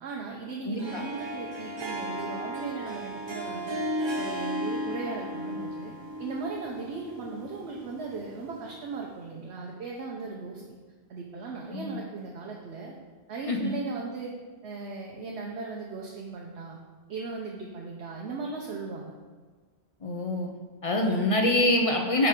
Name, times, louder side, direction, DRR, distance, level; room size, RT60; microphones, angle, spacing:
voice 1, 0.0-3.8 4.2-5.9 6.2-10.8 11.1-12.9 13.3-14.3 14.6-16.8 17.1-19.1, right 4 dB, 75° right, -1 dB, 0.9 m, -37 dB
voice 2, 0.7-1.0 11.7-12.0 13.5-13.7 20.0-20.5 20.8-22.3, left 1 dB, 40° left, 2 dB, 0.5 m, -25 dB
Harp, 0.7-9.0, equal, 35° right, 0.5 m, -35 dB
9.5 x 3.3 x 3.6 m, 1.4 s
omnidirectional pair, 1.2 m